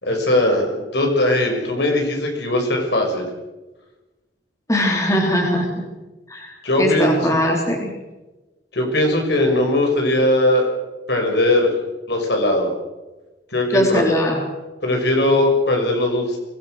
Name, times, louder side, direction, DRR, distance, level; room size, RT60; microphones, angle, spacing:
voice 1, 0.0-3.3 6.6-7.4 8.7-10.7 11.1-11.7 12.1-12.7 13.5-14.0 14.8-16.4, left 1 dB, 65° left, 1 dB, 6.1 m, -19 dB
voice 2, 4.7-5.7 6.3-7.9 13.7-14.4, left 1 dB, 20° left, 0 dB, 3.8 m, -20 dB
23.5 x 18.5 x 6.6 m, 1.1 s
head